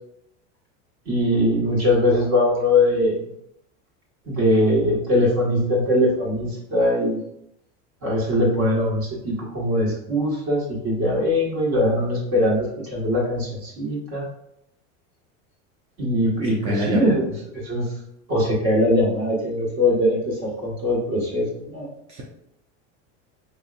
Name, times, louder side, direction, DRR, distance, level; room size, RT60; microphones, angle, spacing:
voice 1, 1.1-3.2 4.3-7.2 8.0-14.2 16.0-17.9 18.3-21.9, left 1 dB, 40° right, -4 dB, 1.5 m, -21 dB
voice 2, 16.4-17.2 22.1-22.2, equal, 20° right, -3 dB, 0.4 m, -26 dB
5.4 x 2.7 x 2.5 m, 0.77 s
supercardioid pair, 160°, 35 cm